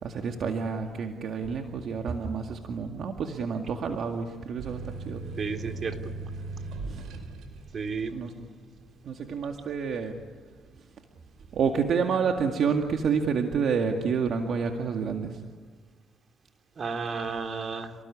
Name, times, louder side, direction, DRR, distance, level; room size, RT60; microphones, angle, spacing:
voice 1, 0.0-5.2 6.9-7.2 8.1-8.3 9.0-10.1 11.5-15.4, right 6 dB, 65° right, 3 dB, 2.1 m, -29 dB
sound 1, 4.6-11.9 12.3-13.0, right 3 dB, 85° right, 5.0 m, -40 dB
voice 2, 5.4-6.1 7.7-8.1 16.8-17.9, right 5 dB, 45° right, 5 dB, 3.4 m, -32 dB
29.5 x 19.5 x 10.0 m, 1.4 s
cardioid pair, 90°, 0 cm